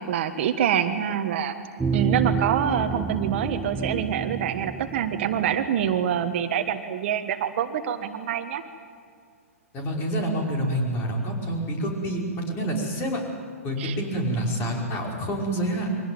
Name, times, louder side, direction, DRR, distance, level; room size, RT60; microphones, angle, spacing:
voice 1, 0.0-1.5 1.9-8.6 13.8-14.0, right 9 dB, 50° right, 8 dB, 1.5 m, -26 dB
sound 1, 1.8-6.2, right 5 dB, 10° right, 0.7 m, -29 dB
voice 2, 9.7-13.2 13.6-16.0, right 1 dB, 25° left, 0 dB, 5.2 m, -27 dB
23.5 x 17.0 x 9.3 m, 2.2 s
hypercardioid pair, 125°, 8 cm